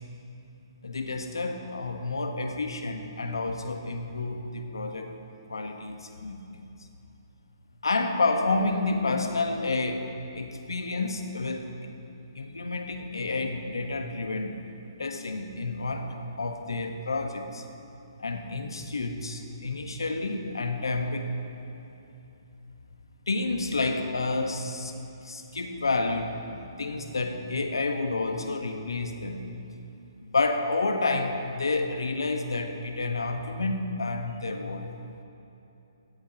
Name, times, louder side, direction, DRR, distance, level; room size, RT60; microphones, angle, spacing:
voice 1, 0.8-5.1 5.5-6.7 7.8-10.1 10.3-11.7 12.3-14.6 15.0-17.6 18.2-21.3 23.3-29.4 30.2-34.9, left 3 dB, 80° left, 5 dB, 1.3 m, -30 dB
17.5 x 13.5 x 3.0 m, 2.9 s
hypercardioid pair, 140°, 2 cm